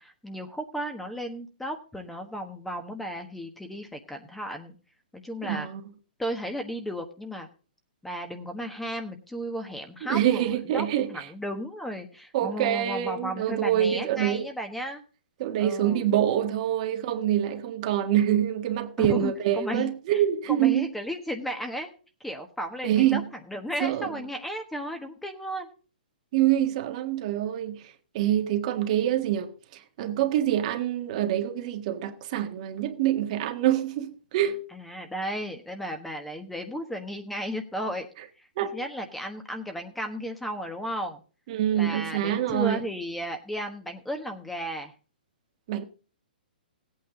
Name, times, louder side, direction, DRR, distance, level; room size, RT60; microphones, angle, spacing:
voice 1, 0.0-4.7 5.1-5.7 6.2-7.5 8.0-15.0 15.6-16.1 19.0-21.9 22.2-23.2 23.5-25.7 34.7-38.1 38.7-41.2 41.7-44.9, equal, 5° left, 1.2 m, -34 dB
voice 2, 5.4-5.8 10.0-11.1 12.3-14.5 15.4-20.9 22.8-23.3 23.8-24.1 26.3-27.8 28.1-29.5 30.0-34.6 38.6-38.8 41.5-42.8 45.7-45.8, right 11 dB, 45° right, 1.6 m, -25 dB
16.5 x 8.7 x 3.7 m
hypercardioid pair, 145°, 5 cm